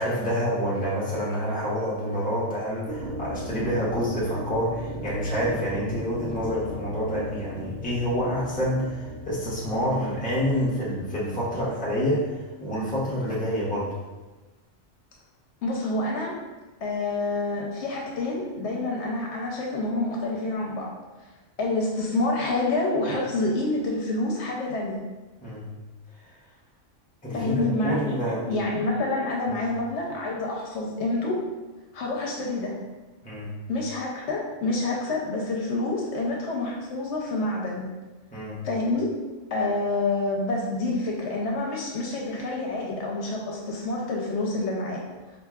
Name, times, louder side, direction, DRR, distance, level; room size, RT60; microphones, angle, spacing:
voice 1, 0.0-13.9 25.4-25.7 27.2-28.5 29.5-29.6 33.2-33.5 38.3-38.6, equal, 10° left, -7 dB, 0.7 m, -27 dB
sound 1, 2.9-12.9, equal, 80° right, 0.9 m, -38 dB
voice 2, 15.6-16.3 16.8-20.9 21.6-25.0 27.3-28.2 28.5-31.4 31.9-32.7 33.7-37.9 38.6-39.1 39.5-45.0, left 2 dB, 70° left, -2 dB, 0.9 m, -27 dB
4.5 x 2.5 x 2.3 m, 1.2 s
omnidirectional pair, 1.3 m